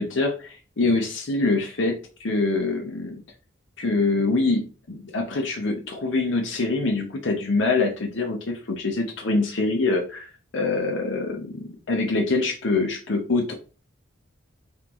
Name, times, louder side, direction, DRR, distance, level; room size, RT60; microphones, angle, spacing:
voice 1, 0.0-3.2 3.8-13.5, left 3 dB, 60° left, 2 dB, 0.7 m, -25 dB
5.7 x 2.5 x 2.9 m, 0.36 s
head